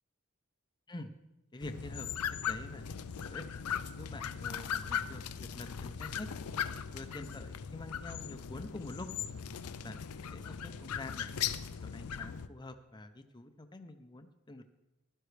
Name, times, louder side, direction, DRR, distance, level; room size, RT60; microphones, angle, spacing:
voice 1, 1.5-3.4 4.0-6.3 6.9-9.1 9.8-11.3 11.8-14.6, left 2 dB, 20° left, 7 dB, 0.6 m, -46 dB
sound 1, 1.6-12.5, left 8 dB, 85° left, 0.5 m, -39 dB
16.0 x 11.5 x 3.3 m, 0.95 s
head